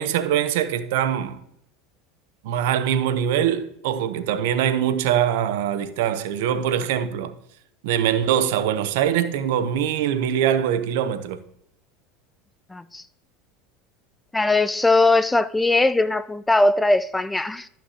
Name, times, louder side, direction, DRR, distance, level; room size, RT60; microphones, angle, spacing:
voice 1, 0.0-1.4 2.4-7.3 7.8-11.4, right 9 dB, 75° right, 0.7 m, -23 dB
voice 2, 12.7-13.0 14.3-17.7, left 2 dB, 10° left, 0.4 m, -20 dB
13.0 x 5.9 x 2.8 m
hypercardioid pair, 95°, 0 cm